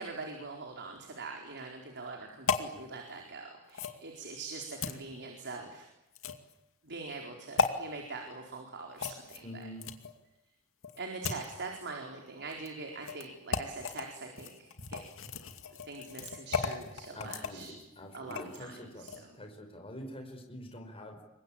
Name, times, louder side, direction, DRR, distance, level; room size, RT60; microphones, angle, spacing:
voice 1, 0.0-5.9 6.8-9.7 11.0-15.0 15.8-17.8 18.1-19.4, right 3 dB, 50° right, 2 dB, 4.5 m, -43 dB
sound 1, 2.5-2.7 3.7-4.0 4.8-5.0 6.1-6.5 7.6-7.7 9.0-10.1 10.8-11.5 12.5-12.7 13.0-13.2 13.5-14.0 14.4-18.6 19.0-19.2, left 5 dB, 65° left, 2.4 m, -35 dB
voice 2, 9.4-9.8 17.2-21.2, equal, 25° left, 4 dB, 5.2 m, -46 dB
28.0 x 24.0 x 8.9 m, 0.92 s
head